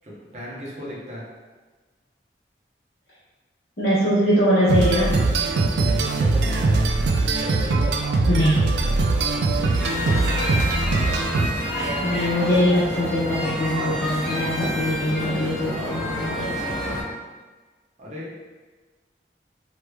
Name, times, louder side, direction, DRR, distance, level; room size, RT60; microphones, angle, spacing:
voice 1, 0.0-1.2 5.7-6.9 7.4-10.8 18.0-18.3, left 1 dB, 40° right, -5 dB, 0.8 m, -37 dB
voice 2, 3.8-5.2 8.3-8.6 12.0-16.5, equal, 60° left, -12 dB, 1.1 m, -22 dB
sound 1, 4.7-11.9, right 3 dB, 75° right, 0.3 m, -21 dB
sound 2, 9.8-17.0, equal, ahead, 0.8 m, -28 dB
3.1 x 3.1 x 2.3 m, 1.3 s
head